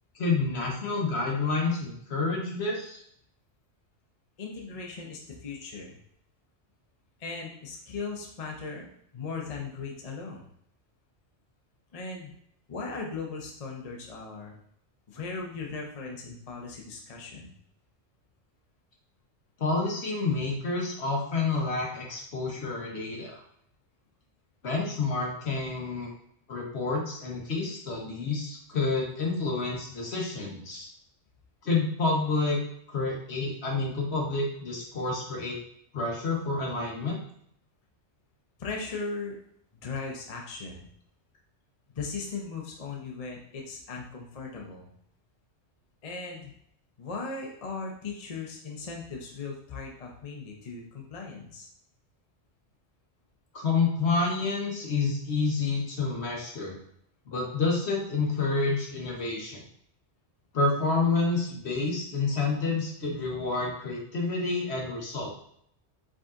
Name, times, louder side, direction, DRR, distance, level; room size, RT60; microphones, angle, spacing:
voice 1, 0.1-3.0 19.6-23.4 24.6-26.1 26.5-30.9 31.6-32.6 32.9-35.6 35.9-37.2 53.5-56.8 57.3-59.6 60.5-65.3, left 3 dB, 65° left, -2 dB, 1.4 m, -29 dB
voice 2, 4.4-6.0 7.2-8.9 9.1-10.5 11.9-12.3 12.7-14.6 15.1-17.5 38.6-39.4 39.7-40.9 41.9-44.9 46.0-46.5 47.0-51.7, left 4 dB, 40° left, 0 dB, 0.7 m, -38 dB
5.0 x 4.1 x 2.5 m, 0.67 s
omnidirectional pair, 1.2 m